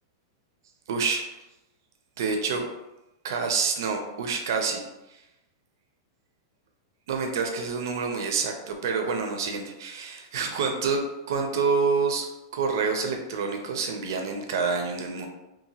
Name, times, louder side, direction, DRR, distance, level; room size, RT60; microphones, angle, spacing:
voice 1, 0.9-1.2 2.2-2.7 3.2-4.8 5.1-5.2 7.1-11.0 11.3-12.3 12.5-15.3, right 5 dB, 70° right, 4 dB, 0.4 m, -27 dB
2.8 x 2.4 x 2.7 m, 0.96 s
supercardioid pair, 155°, 2 cm